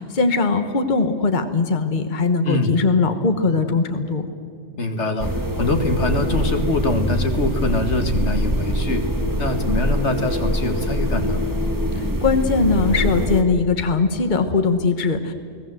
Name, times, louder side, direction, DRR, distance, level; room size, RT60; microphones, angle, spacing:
voice 1, 0.0-4.3 11.9-15.3, left 4 dB, 40° left, 7 dB, 1.4 m, -20 dB
voice 2, 4.8-5.3 5.6-9.0 9.4-11.4, left 2 dB, 70° left, 6 dB, 2.1 m, -23 dB
sound 1, 5.2-13.4, equal, 15° right, 1.6 m, -23 dB
29.5 x 19.0 x 7.8 m, 2.3 s
omnidirectional pair, 1.2 m